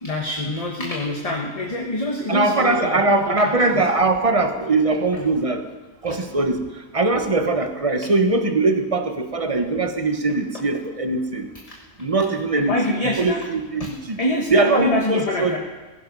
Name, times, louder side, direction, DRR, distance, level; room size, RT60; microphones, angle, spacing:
voice 1, 0.0-3.8 6.0-6.2 11.7-11.8 12.7-13.5 13.8-13.9 14.2-15.6, left 1 dB, 25° left, 0 dB, 1.4 m, -26 dB
voice 2, 2.3-5.6 6.0-6.6 6.9-11.5 12.0-14.2 14.5-15.6, right 3 dB, 25° right, 7 dB, 1.1 m, -21 dB
16.5 x 15.5 x 5.4 m, 1.2 s
omnidirectional pair, 1.5 m